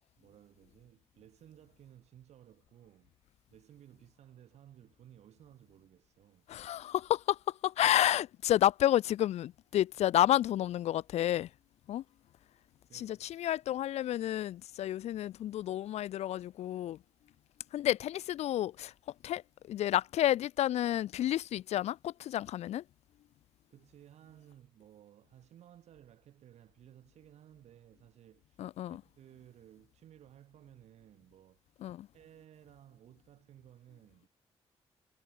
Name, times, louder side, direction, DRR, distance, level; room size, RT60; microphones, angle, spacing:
voice 1, 0.2-3.1 3.5-6.5 12.9-13.5 23.7-28.6 28.9-31.7 32.1-34.3, right 11 dB, 85° right, 5.0 m, -58 dB
voice 2, 6.5-11.5 11.9-12.0 12.9-17.0 17.7-18.9 19.2-19.4 19.7-22.8 28.6-29.0 31.8-32.1, left 12 dB, 80° left, 0.5 m, -30 dB
cardioid pair, 105°, 11 cm